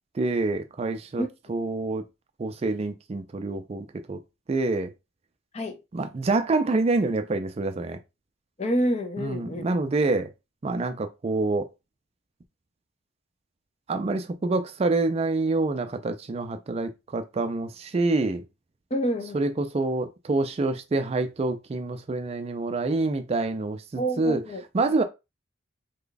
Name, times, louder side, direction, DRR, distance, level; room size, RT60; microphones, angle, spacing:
voice 1, 0.1-2.0 2.4-4.2 4.5-4.9 5.9-8.0 9.2-10.3 10.6-11.7 13.9-18.4 19.3-24.4 24.7-25.0, right 3 dB, 30° right, 0.3 m, -27 dB
voice 2, 8.6-9.6 18.9-19.4 24.0-24.6, equal, 35° left, 0.5 m, -27 dB
3.3 x 2.2 x 3.8 m
head